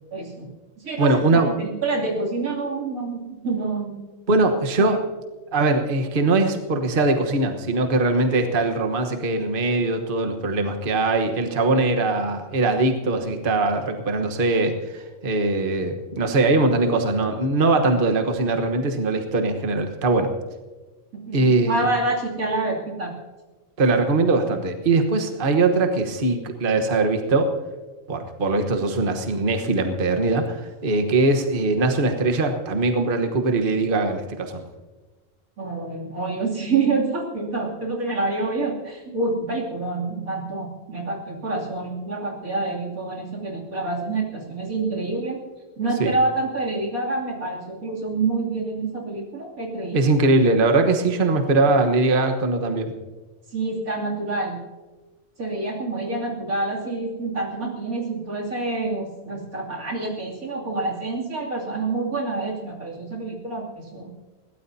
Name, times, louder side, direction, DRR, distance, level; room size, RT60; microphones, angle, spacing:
voice 1, 0.1-4.0 4.8-5.0 21.3-23.1 35.6-45.4 45.8-50.0 53.5-54.6 55.4-64.1, right 3 dB, 85° right, -2 dB, 3.3 m, -27 dB
voice 2, 1.0-1.5 4.3-5.0 5.5-20.3 21.3-21.8 23.8-27.5 28.1-34.6 46.0-46.1 49.9-52.9, right 3 dB, 40° right, 5 dB, 1.3 m, -21 dB
22.0 x 16.5 x 2.8 m, 1.2 s
omnidirectional pair, 1.4 m